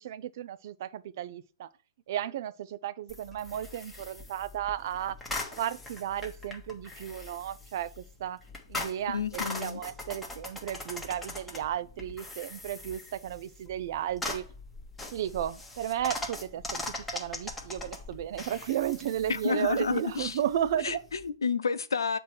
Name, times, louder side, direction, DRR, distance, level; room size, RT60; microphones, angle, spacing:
voice 1, 0.0-1.7 2.1-5.2 5.6-8.4 8.7-14.4 15.1-16.8 17.1-21.0, right 11 dB, 55° right, 0.5 m, -34 dB
sound 1, 3.1-21.3, left 2 dB, 5° left, 1.2 m, -41 dB
voice 2, 9.1-9.8 19.3-20.4 20.8-22.2, left 5 dB, 85° left, 0.7 m, -30 dB
7.3 x 3.0 x 6.0 m
hypercardioid pair, 135°, 2 cm